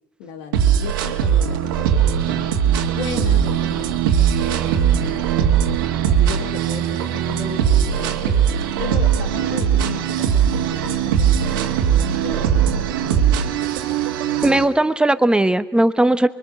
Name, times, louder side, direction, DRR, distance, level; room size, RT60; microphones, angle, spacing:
voice 1, 0.2-2.5 2.9-5.6 6.1-8.4 8.8-11.8 12.2-13.7, left 8 dB, 75° left, 6 dB, 2.1 m, -35 dB
sound 1, 0.5-14.6, right 9 dB, 90° right, 1.7 m, -19 dB
voice 2, 14.4-16.3, right 1 dB, 10° right, 11 dB, 1.1 m, -17 dB
25.0 x 22.5 x 6.7 m, 0.92 s
supercardioid pair, 80°, 11 cm